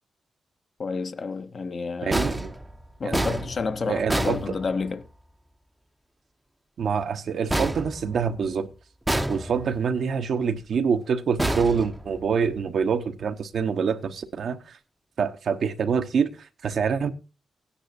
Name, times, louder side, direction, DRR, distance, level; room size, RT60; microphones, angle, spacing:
voice 1, 0.8-2.3 3.0-5.1, left 4 dB, 45° left, 0.7 m, -30 dB
voice 2, 2.0-2.5 3.0-3.3 3.9-4.4 6.8-8.7 9.3-14.8 15.2-17.1, right 6 dB, 65° right, 1.1 m, -26 dB
sound 1, 2.1-5.2 7.5-8.6 9.1-9.9 11.4-12.5, right 1 dB, 10° right, 0.7 m, -29 dB
17.0 x 10.0 x 2.7 m
wide cardioid pair, 130°, 0 cm